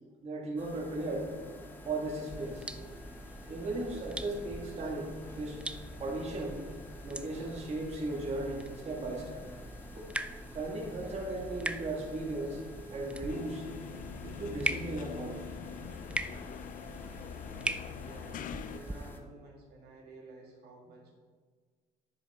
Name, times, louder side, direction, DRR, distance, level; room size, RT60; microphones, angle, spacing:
voice 1, 0.2-1.3 1.8-2.7 3.5-5.6 6.0-6.6 7.0-9.4 9.9-10.1 10.5-12.6 12.9-13.7 14.2-15.4, right 2 dB, 40° right, -1 dB, 1.9 m, -36 dB
sound 1, 0.6-19.2, left 2 dB, 10° left, 1.1 m, -49 dB
sound 2, 2.3-19.1, right 2 dB, 5° right, 0.4 m, -42 dB
sound 3, 13.3-18.8, left 9 dB, 50° left, 0.5 m, -44 dB
voice 2, 17.8-21.1, right 2 dB, 70° right, -1 dB, 1.9 m, -52 dB
10.0 x 6.3 x 4.2 m, 1.5 s
cardioid pair, 110°, 17 cm